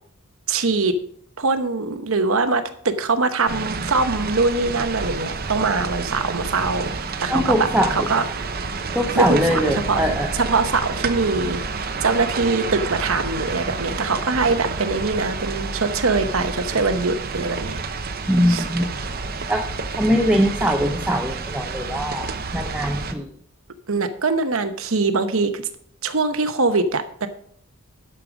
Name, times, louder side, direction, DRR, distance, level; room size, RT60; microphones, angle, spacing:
voice 1, 0.5-1.0 1.4-6.9 7.2-8.2 9.1-10.0 10.3-17.8 18.5-18.7 23.9-25.6 26.0-27.3, right 3 dB, 65° right, 9 dB, 1.0 m, -22 dB
sound 1, 3.5-23.1, right 4 dB, 45° right, 0.8 m, -29 dB
voice 2, 7.3-8.1 8.9-10.3 18.3-18.8 19.5-19.7 20.0-22.3 22.5-23.3, equal, 5° right, 2 dB, 0.6 m, -21 dB
11.0 x 6.8 x 5.0 m, 0.64 s
head